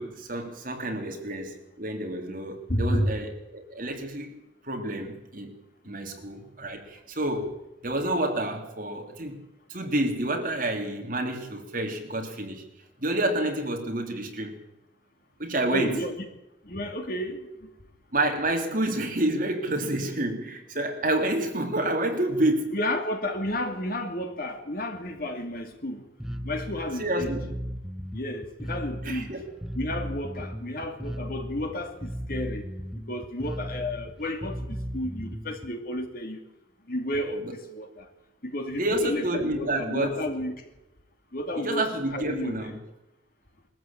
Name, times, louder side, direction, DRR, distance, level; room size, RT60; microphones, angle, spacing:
voice 1, 0.0-4.4 4.6-5.5 5.8-9.4 9.7-12.6 13.0-14.6 15.4-16.0 18.1-22.8 27.0-27.5 29.0-29.4 37.4-37.5 38.7-40.3 41.6-42.8, right 1 dB, 45° right, 3 dB, 3.2 m, -29 dB
voice 2, 2.7-3.1 6.0-6.2 15.7-16.1 16.6-17.5 22.7-26.0 26.4-27.3 28.1-29.3 29.7-32.7 33.1-36.4 36.9-38.1 38.4-40.6 41.3-42.7, left 1 dB, 45° left, 5 dB, 2.7 m, -32 dB
Bass guitar, 26.2-35.7, equal, ahead, 0.9 m, -36 dB
22.5 x 14.0 x 8.8 m, 0.95 s
head